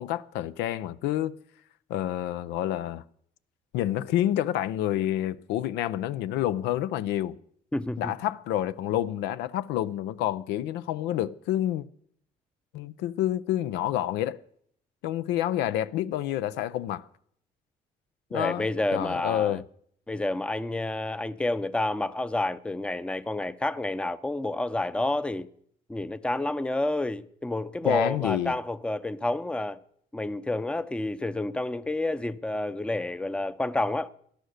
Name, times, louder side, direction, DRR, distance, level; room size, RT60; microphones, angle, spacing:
voice 1, 0.0-1.4 1.9-3.0 3.7-7.4 8.0-11.8 12.7-14.4 15.0-17.1 18.3-18.7 18.9-19.6 27.8-28.5, left 12 dB, 90° left, 0.6 m, -28 dB
voice 2, 7.7-8.1 18.3-19.6 20.1-25.5 25.9-29.8 30.1-34.1, left 2 dB, 5° left, 0.6 m, -29 dB
18.0 x 11.5 x 6.5 m
cardioid pair, 110°, 17 cm